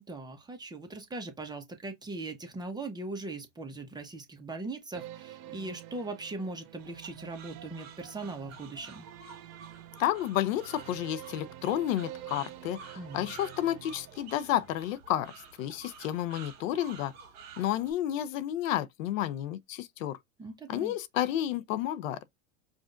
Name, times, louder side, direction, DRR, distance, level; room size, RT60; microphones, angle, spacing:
voice 1, 0.0-9.1 13.0-13.3 20.4-20.9, right 2 dB, 10° right, 0.9 m, -40 dB
sound 1, 4.9-14.8, right 14 dB, 55° right, 0.9 m, -48 dB
sound 2, 6.8-17.9, right 5 dB, 40° right, 1.7 m, -51 dB
voice 2, 10.0-15.3 15.6-17.1 17.6-20.2 20.7-22.2, left 12 dB, 75° left, 0.6 m, -31 dB
4.9 x 2.5 x 2.4 m
supercardioid pair, 125°, 40 cm